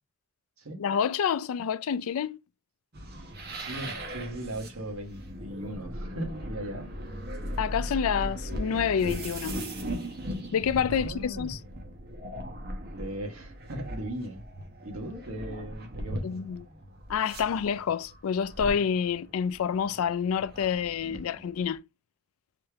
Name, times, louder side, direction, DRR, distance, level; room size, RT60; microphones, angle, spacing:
voice 1, 0.8-2.4 7.6-9.6 10.5-11.6 16.2-16.6 17.1-21.8, left 7 dB, 80° left, 0.4 m, -28 dB
sound 1, 2.9-21.8, equal, 45° right, 1.0 m, -38 dB
voice 2, 3.6-6.9 10.9-11.5 12.8-14.4 14.8-16.4, right 1 dB, 75° right, 1.4 m, -38 dB
4.1 x 3.3 x 3.4 m
head